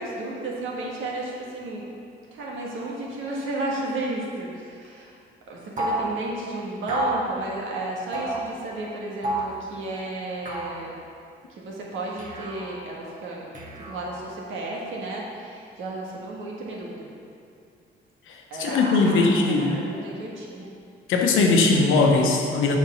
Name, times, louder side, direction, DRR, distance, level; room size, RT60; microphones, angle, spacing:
voice 1, 0.0-1.9 2.3-5.1 5.5-10.9 11.5-13.4 13.8-17.1 18.5-20.8, right 2 dB, 80° right, -3 dB, 1.6 m, -33 dB
sound 1, 5.8-6.1 6.9-7.2 8.1-8.4 9.2-9.6 10.5-10.8 12.2-12.7 13.5-14.2, right 1 dB, 40° right, 1.6 m, -29 dB
voice 2, 18.3-19.8 21.1-22.8, left 3 dB, 85° left, 1 dB, 1.0 m, -20 dB
7.3 x 4.5 x 5.5 m, 2.4 s
cardioid pair, 90°, 20 cm